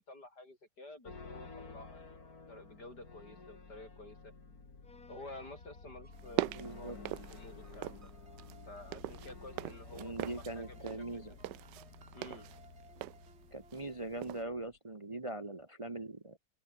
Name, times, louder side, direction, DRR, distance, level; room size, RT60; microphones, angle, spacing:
voice 1, 0.0-2.1 2.5-4.3 5.1-8.1 8.7-11.4 12.1-12.5, left 2 dB, 75° left, 8.6 m, -51 dB
sound 1, 1.0-14.8, left 3 dB, 60° left, 3.8 m, -52 dB
sound 2, 6.0-14.3, right 3 dB, 40° right, 3.2 m, -63 dB
sound 3, 6.1-8.1 8.4-13.9 14.2-14.4, right 15 dB, 85° right, 1.3 m, -41 dB
voice 2, 6.5-7.0 9.9-11.3 13.5-16.4, right 2 dB, 20° right, 1.1 m, -41 dB
open air
omnidirectional pair, 1.8 m